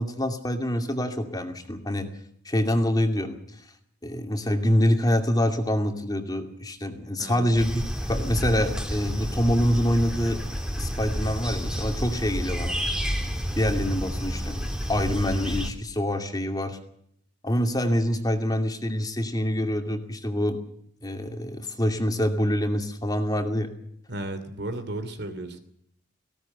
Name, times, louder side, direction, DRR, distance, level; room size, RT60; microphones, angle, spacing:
voice 1, 0.0-2.1 2.4-3.4 4.0-7.8 8.1-10.4 10.8-12.7 13.6-16.8 17.4-20.6 21.0-23.7, equal, 20° left, 5 dB, 2.5 m, -25 dB
sound 1, 7.6-15.7, equal, 5° right, 2.5 m, -30 dB
voice 2, 24.1-25.6, right 1 dB, 55° right, 10 dB, 2.8 m, -34 dB
19.0 x 17.0 x 8.0 m, 0.68 s
head